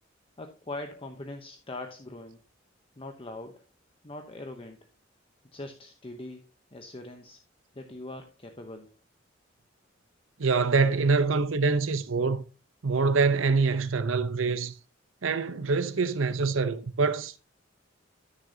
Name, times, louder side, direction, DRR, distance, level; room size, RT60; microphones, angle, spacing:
voice 1, 0.4-2.4 3.0-3.6 4.0-4.8 5.5-6.5 6.7-7.4 7.7-8.9, left 2 dB, 30° left, 0.8 m, -41 dB
voice 2, 10.4-12.4 12.8-14.7 15.2-17.4, right 4 dB, 80° right, 0.7 m, -25 dB
13.5 x 6.5 x 2.8 m
head